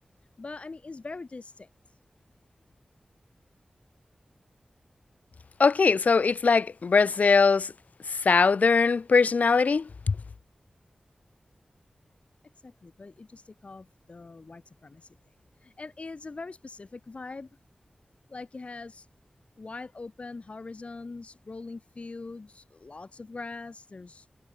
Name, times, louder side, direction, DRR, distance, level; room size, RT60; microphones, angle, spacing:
voice 1, 0.4-1.7 12.6-15.1 15.6-17.5 18.3-19.1 19.6-24.3, left 3 dB, 55° left, 5.5 m, -42 dB
voice 2, 5.6-7.7 8.1-10.1, left 4 dB, 80° left, 2.9 m, -21 dB
wide cardioid pair, 80°, 3 cm